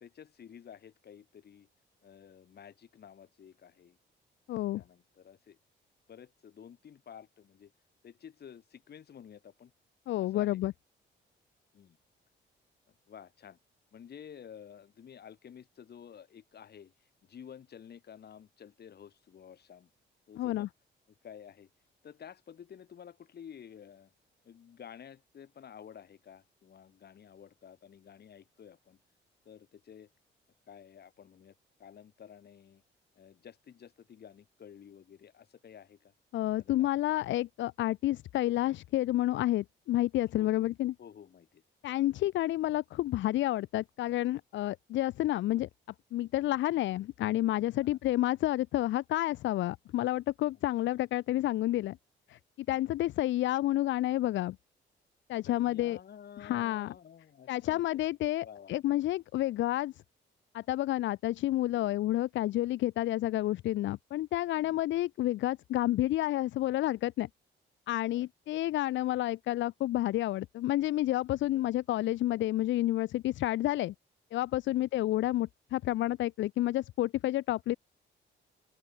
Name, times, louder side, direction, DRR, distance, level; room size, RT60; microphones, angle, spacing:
voice 1, 0.0-1.7 2.0-4.0 4.5-5.6 6.1-7.7 8.0-9.7 10.2-10.6 11.7-12.0 12.9-13.6 13.9-19.9 20.3-20.7 21.1-21.7 22.0-24.1 24.4-29.0 29.4-30.1 30.7-32.8 33.2-36.1 36.6-36.9 40.2-40.6 41.0-41.6 46.7-46.8 47.8-48.0 52.7-53.0 55.5-58.0 58.4-58.8 61.8-62.0 64.6-64.8 68.1-68.6 71.5-71.6 74.7-74.9, left 8 dB, 55° left, 4.3 m, -52 dB
voice 2, 4.5-4.8 10.1-10.7 20.4-20.7 36.3-40.9 41.8-45.7 46.1-52.0 52.3-52.4 52.7-54.6 55.3-56.0 56.4-56.9 57.5-59.9 60.5-67.3 67.9-73.9 74.3-77.7, left 15 dB, 70° left, 0.5 m, -30 dB
open air
cardioid pair, 90°, 20 cm